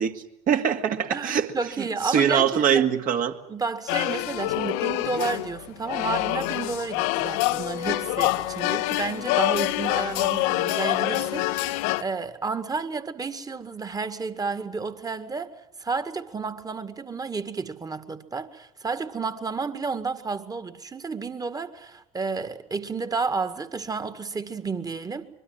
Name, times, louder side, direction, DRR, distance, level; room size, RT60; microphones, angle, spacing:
voice 1, 0.0-1.5 2.0-3.4, right 8 dB, 45° right, 2.3 m, -23 dB
voice 2, 1.1-2.9 3.5-15.5 15.8-25.3, right 4 dB, 20° right, 1.9 m, -31 dB
sound 1, 3.9-12.0, left 18 dB, 60° left, 0.9 m, -26 dB
24.5 x 23.0 x 7.5 m
figure-of-eight pair, 65°, 19 cm